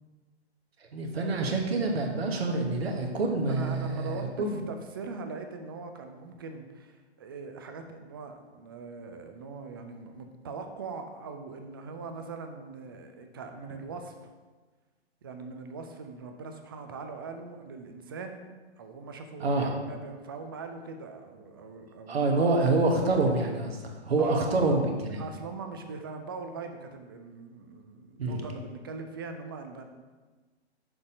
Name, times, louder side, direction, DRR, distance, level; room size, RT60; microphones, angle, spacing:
voice 1, 0.9-4.6 19.4-19.7 22.1-25.2 28.2-28.4, right 2 dB, 60° right, 2 dB, 1.2 m, -27 dB
voice 2, 3.5-14.1 15.2-18.5 18.8-22.5 24.2-29.9, right 4 dB, 20° right, 6 dB, 0.4 m, -41 dB
6.5 x 4.1 x 5.1 m, 1.3 s
figure-of-eight pair, 115°, 34 cm